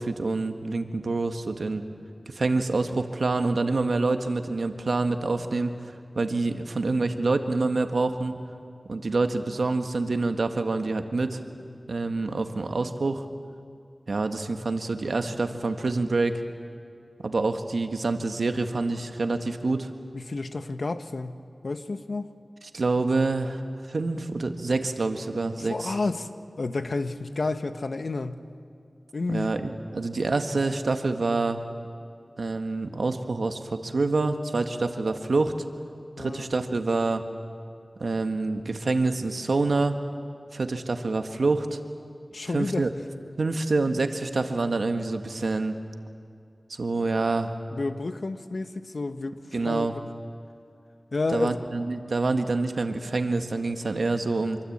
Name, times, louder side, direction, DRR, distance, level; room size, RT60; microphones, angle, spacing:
voice 1, 0.0-1.8 2.3-5.7 6.1-8.4 8.9-11.4 11.9-13.2 14.1-16.4 17.2-19.9 22.7-23.6 23.9-25.9 29.3-31.6 32.4-35.5 36.2-37.2 38.0-39.9 40.5-41.8 42.5-42.9 43.4-45.8 46.7-47.5 49.5-49.9 51.3-54.6, right 3 dB, 85° right, 7 dB, 1.6 m, -26 dB
voice 2, 20.1-22.3 25.6-26.3 26.6-28.4 29.1-29.5 36.2-36.5 42.3-42.9 47.7-50.0 51.1-51.6, left 3 dB, 75° left, 9 dB, 1.2 m, -31 dB
27.0 x 24.0 x 8.8 m, 2.4 s
wide cardioid pair, 65°, 0 cm